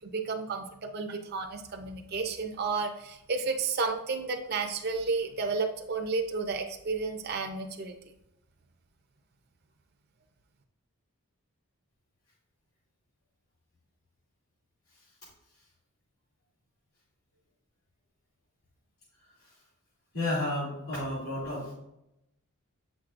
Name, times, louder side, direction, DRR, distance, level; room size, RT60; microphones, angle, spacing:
voice 1, 0.0-7.9, right 4 dB, 45° right, 3 dB, 0.6 m, -32 dB
voice 2, 20.1-21.7, left 1 dB, 80° left, -9 dB, 2.7 m, -31 dB
8.2 x 5.9 x 2.5 m, 0.85 s
head